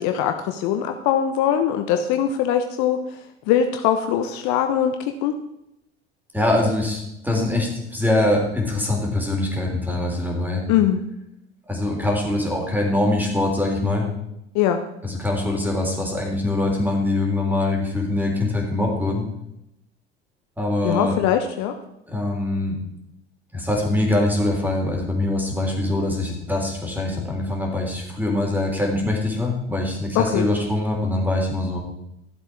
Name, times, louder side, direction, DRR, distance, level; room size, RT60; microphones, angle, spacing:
voice 1, 0.0-3.0 3.5-5.4 10.7-11.0 14.5-14.8 20.8-21.8 30.1-30.5, left 9 dB, 55° left, 6 dB, 1.0 m, -21 dB
voice 2, 6.3-10.6 11.7-14.1 15.0-19.2 20.6-21.2 22.1-22.8 23.5-31.8, left 2 dB, 5° right, 0 dB, 3.7 m, -23 dB
13.0 x 7.8 x 4.7 m, 0.83 s
hypercardioid pair, 75°, 34 cm